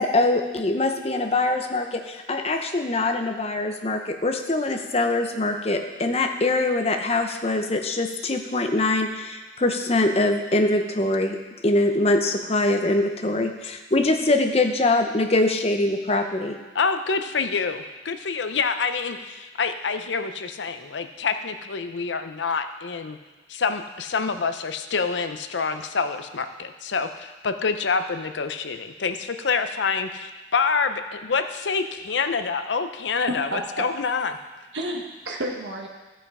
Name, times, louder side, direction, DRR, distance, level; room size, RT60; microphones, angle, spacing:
voice 1, 0.0-16.6, left 2 dB, 35° left, 5 dB, 0.8 m, -23 dB
voice 2, 16.7-23.2 23.5-34.4, left 5 dB, 85° left, 8 dB, 0.6 m, -27 dB
voice 3, 33.3-33.9 34.7-35.9, right 1 dB, 90° right, 0 dB, 1.2 m, -30 dB
13.5 x 5.6 x 4.9 m, 1.2 s
head